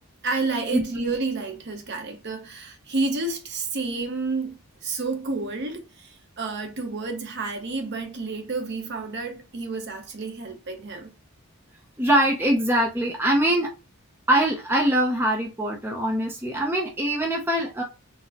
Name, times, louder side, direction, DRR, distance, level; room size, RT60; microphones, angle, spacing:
voice 1, 0.2-11.1, right 3 dB, 50° right, 0.7 m, -30 dB
voice 2, 12.0-13.7 14.3-17.8, right 1 dB, 10° right, 0.5 m, -23 dB
4.0 x 2.0 x 2.8 m
head